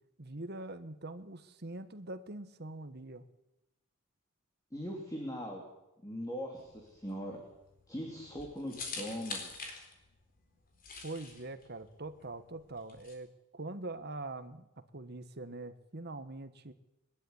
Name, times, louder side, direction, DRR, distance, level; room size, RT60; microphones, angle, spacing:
voice 1, 0.2-3.3 11.0-16.7, right 2 dB, 50° right, 10 dB, 1.4 m, -43 dB
voice 2, 4.7-5.6 6.0-7.4 7.9-9.6, equal, 15° left, 0 dB, 3.3 m, -40 dB
sound 1, 6.6-13.1, left 4 dB, 45° left, 4.1 m, -46 dB
22.0 x 12.5 x 9.7 m, 0.94 s
head